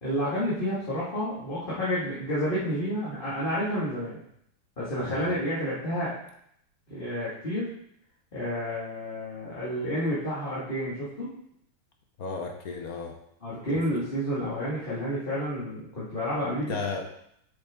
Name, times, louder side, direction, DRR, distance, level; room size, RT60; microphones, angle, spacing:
voice 1, 0.0-4.2 4.8-6.1 6.9-7.7 8.3-11.3 13.4-16.7, equal, 25° left, -10 dB, 2.0 m, -30 dB
voice 2, 12.2-13.2 13.7-13.8 16.7-17.0, left 4 dB, 55° left, 3 dB, 1.2 m, -34 dB
8.1 x 6.6 x 3.7 m, 0.72 s
omnidirectional pair, 2.2 m